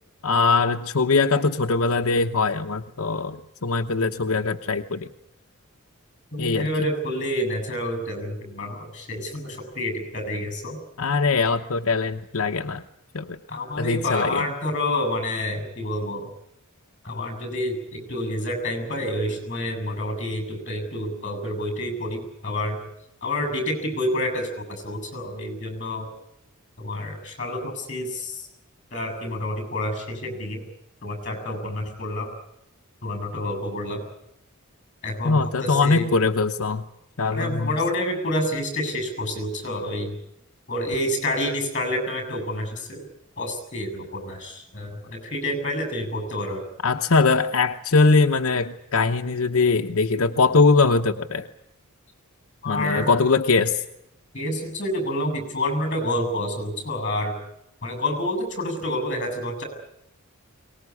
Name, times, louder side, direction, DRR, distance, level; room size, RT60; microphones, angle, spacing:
voice 1, 0.2-5.1 6.4-6.7 11.0-12.8 13.1-13.4 13.8-14.5 35.2-36.8 37.2-37.8 46.8-51.5 52.7-53.8, left 4 dB, 70° left, 4 dB, 0.9 m, -21 dB
voice 2, 6.3-10.8 13.5-16.3 17.0-22.8 23.2-26.1 26.8-28.5 28.9-30.6 31.0-32.3 33.0-34.0 35.0-36.1 37.3-40.2 40.7-43.1 43.4-46.6 52.6-53.1 54.3-57.3 57.8-59.6, left 1 dB, 35° left, 8 dB, 7.6 m, -28 dB
23.5 x 19.5 x 9.7 m, 0.84 s
head